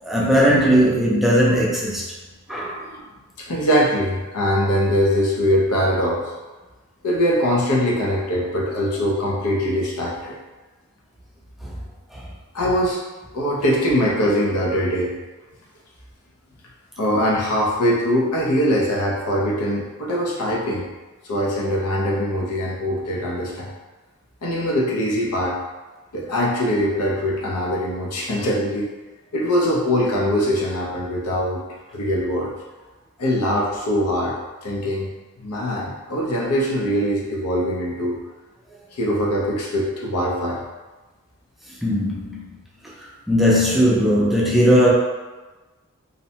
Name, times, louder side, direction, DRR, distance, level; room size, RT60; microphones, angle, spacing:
voice 1, 0.0-2.0 2.5-2.8 41.8-42.4 43.3-44.9, equal, ahead, -6 dB, 0.4 m, -18 dB
voice 2, 2.5-3.0 3.5-6.3 7.0-10.4 12.5-13.0 13.3-15.2 17.0-20.9 21.3-23.7 24.4-25.6 26.1-28.9 29.3-31.6 31.9-32.5 33.2-35.1 35.4-38.2 39.0-40.6, equal, 90° left, -3 dB, 0.7 m, -22 dB
2.6 x 2.1 x 2.7 m, 1.2 s
head